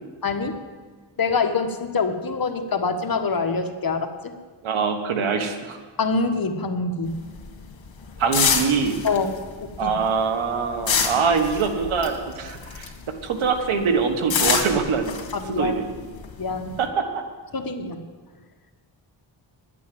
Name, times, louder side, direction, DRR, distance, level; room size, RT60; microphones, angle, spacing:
voice 1, 0.2-0.6 1.2-4.3 6.0-7.2 9.0-9.3 9.6-9.9 15.3-15.7 16.4-16.8 17.5-18.0, left 4 dB, 45° left, 6 dB, 1.3 m, -25 dB
voice 2, 4.6-5.8 8.2-9.0 9.8-12.9 13.2-15.2 15.5-15.9 16.8-17.0, right 5 dB, 90° right, 6 dB, 1.5 m, -23 dB
sound 1, 7.1-13.1 13.4-16.8, left 6 dB, 70° left, 2.2 m, -26 dB
10.5 x 8.4 x 9.2 m, 1.4 s
cardioid pair, 75°, 47 cm